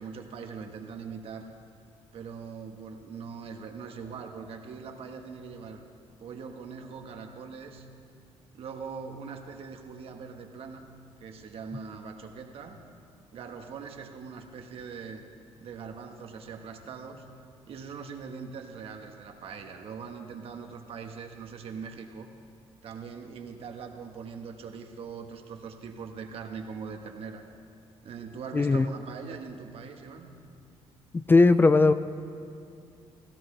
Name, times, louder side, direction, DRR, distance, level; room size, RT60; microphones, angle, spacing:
voice 1, 0.0-1.5 2.1-5.8 6.2-7.9 8.5-10.9 11.2-12.8 13.3-15.2 15.6-17.2 17.7-22.3 22.8-27.4 28.0-30.3, right 5 dB, 60° right, 4 dB, 1.2 m, -41 dB
voice 2, 28.5-28.9 31.1-31.9, left 3 dB, 20° left, 12 dB, 0.4 m, -19 dB
16.5 x 16.5 x 3.3 m, 2.5 s
cardioid pair, 115°, 11 cm